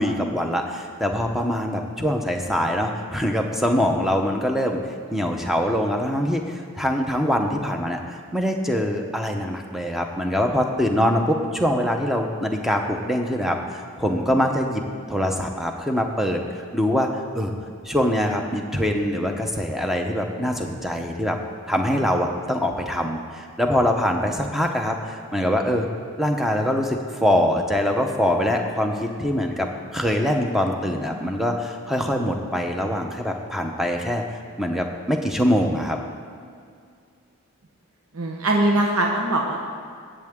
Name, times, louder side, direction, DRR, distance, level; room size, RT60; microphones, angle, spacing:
voice 1, 0.0-4.8 5.1-16.4 16.7-17.1 17.3-17.5 17.8-21.4 21.7-25.9 26.2-34.2 34.6-36.0, equal, ahead, 2 dB, 0.8 m, -23 dB
voice 2, 38.1-39.6, right 1 dB, 70° right, 0 dB, 1.1 m, -21 dB
18.5 x 7.6 x 3.7 m, 2.2 s
head